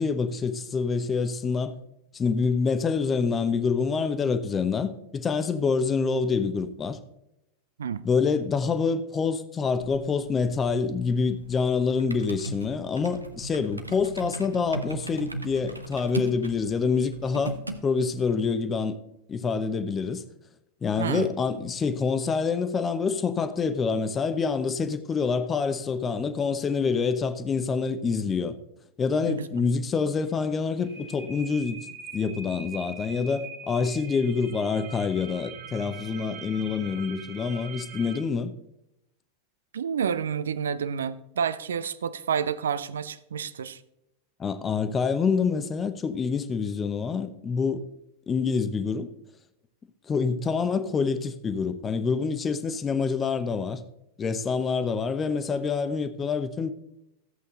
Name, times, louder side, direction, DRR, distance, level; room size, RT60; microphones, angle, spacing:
voice 1, 0.0-1.7 2.1-7.0 8.0-17.6 17.8-19.0 19.3-20.2 20.8-28.5 29.0-31.8 32.1-38.5 44.4-47.8 48.3-49.1 50.1-53.8 54.2-56.7, left 5 dB, 20° left, 0.9 m, -26 dB
sound 1, 9.7-17.8, right 2 dB, 85° right, 1.0 m, -38 dB
voice 2, 21.0-21.3 29.2-29.5 39.7-43.8, right 7 dB, 65° right, 0.6 m, -29 dB
sound 2, 30.1-38.2, right 5 dB, 45° right, 1.7 m, -43 dB
14.5 x 8.2 x 3.9 m
figure-of-eight pair, 90°, 0 cm